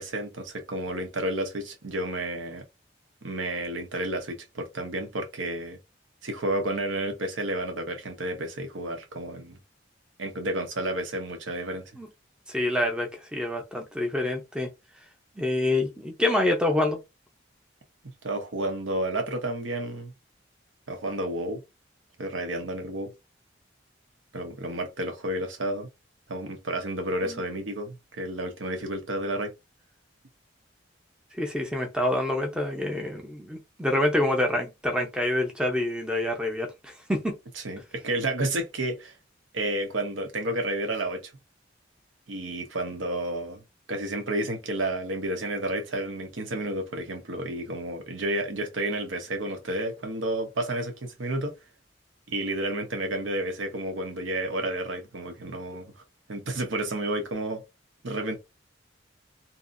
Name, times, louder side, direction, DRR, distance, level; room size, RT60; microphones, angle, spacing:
voice 1, 0.0-2.6 3.2-5.8 6.2-9.6 10.2-11.8 18.2-20.1 20.9-21.6 22.2-23.1 24.3-25.9 26.3-29.5 37.6-39.1 39.5-41.3 42.3-43.6 43.9-51.5 52.3-55.9 56.3-57.6 58.0-58.4, right 1 dB, 85° right, 0.8 m, -31 dB
voice 2, 12.5-14.7 15.4-17.0 27.2-27.4 31.4-37.4, left 1 dB, 5° right, 0.6 m, -27 dB
2.7 x 2.5 x 2.5 m
head